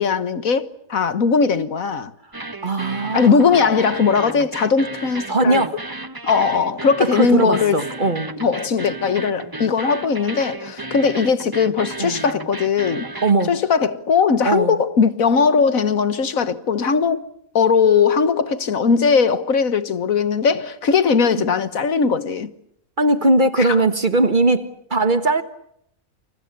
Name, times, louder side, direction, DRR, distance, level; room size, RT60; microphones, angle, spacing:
voice 1, 0.0-2.1 3.1-5.6 6.2-7.8 8.4-13.1 13.5-17.2 17.6-22.5 23.6-23.7, left 5 dB, 70° left, 1.8 m, -19 dB
sound 1, 2.3-13.5, right 2 dB, 15° right, 1.0 m, -33 dB
voice 2, 2.6-3.6 5.3-5.8 7.0-8.3 12.0-12.2 13.2-13.6 14.4-14.8 21.3-21.5 23.0-25.4, right 2 dB, 35° right, 1.7 m, -19 dB
29.0 x 29.0 x 6.8 m
omnidirectional pair, 1.5 m